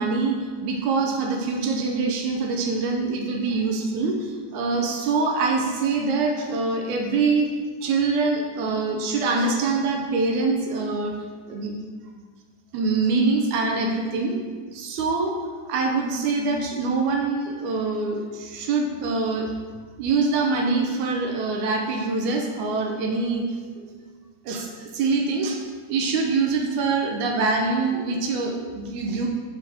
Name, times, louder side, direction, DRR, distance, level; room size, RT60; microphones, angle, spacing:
voice 1, 0.0-7.5 7.8-11.1 11.5-11.7 12.7-14.4 14.7-15.4 15.7-19.5 20.0-23.4 23.8-23.9 24.5-29.3, right 4 dB, 75° right, 2 dB, 1.8 m, -24 dB
5.8 x 5.2 x 6.3 m, 1.5 s
omnidirectional pair, 4.1 m